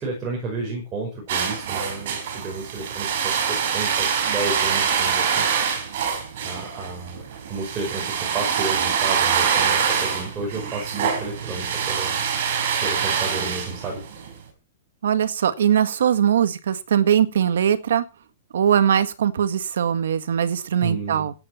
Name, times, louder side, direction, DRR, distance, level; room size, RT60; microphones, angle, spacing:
voice 1, 0.0-5.5 6.4-7.2 7.5-12.2 12.8-14.0 20.8-21.3, right 3 dB, 15° right, 5.5 m, -32 dB
sound 1, 1.3-14.3, right 7 dB, 50° right, 5.0 m, -24 dB
voice 2, 15.0-18.0 18.5-21.3, right 9 dB, 75° right, 1.7 m, -21 dB
15.0 x 9.9 x 4.4 m
hypercardioid pair, 175°, 0 cm